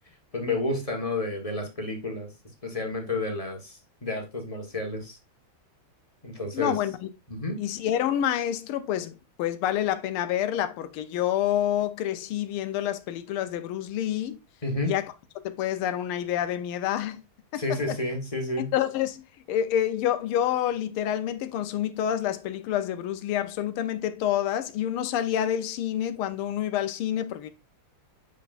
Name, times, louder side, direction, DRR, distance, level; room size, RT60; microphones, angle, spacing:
voice 1, 0.3-2.3 2.6-5.2 6.2-6.7 7.3-7.6 14.6-14.9 17.6-18.7, left 2 dB, 20° left, 1.2 m, -30 dB
voice 2, 6.5-7.1 7.6-14.4 14.8-15.1 15.4-17.2 17.5-18.0 18.6-19.2 19.5-27.5, left 11 dB, 80° left, 1.6 m, -28 dB
7.6 x 5.4 x 2.5 m
omnidirectional pair, 2.4 m